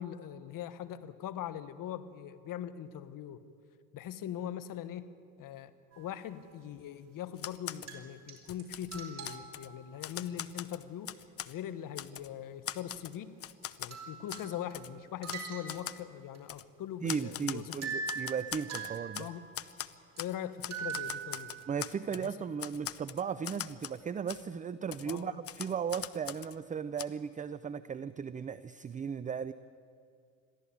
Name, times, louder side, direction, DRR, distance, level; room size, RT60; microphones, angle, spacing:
voice 1, 0.0-3.4 3.9-5.1 5.4-11.1 11.4-13.3 13.8-18.0 19.2-19.5 20.2-21.5 22.2-22.3 25.1-25.4, left 10 dB, 50° left, 12 dB, 1.4 m, -41 dB
sound 1, 5.9-6.3 7.9-8.3 8.6-8.7 8.9-10.2 13.6-13.7 13.9-14.9 15.2-16.1 16.3-16.4 17.1-17.2 17.8-19.8 20.2-20.3 20.7-21.9, right 6 dB, 40° right, 4.8 m, -42 dB
Typewriter, 7.4-7.9 8.4-9.7 10.0-11.5 12.0-12.3 12.7-13.9 14.3-14.5 14.7-14.9 15.3-15.4 15.7-16.0 16.5-16.6 17.1-19.3 19.5-20.3 20.6-22.3 22.6-24.0 24.3-24.4 24.9-26.6 27.0-27.1, left 10 dB, 35° left, 0.8 m, -41 dB
voice 2, 17.0-19.3 21.7-29.5, right 7 dB, 20° right, 14 dB, 0.5 m, -36 dB
22.0 x 14.5 x 8.6 m, 2.3 s
hypercardioid pair, 85°, 42 cm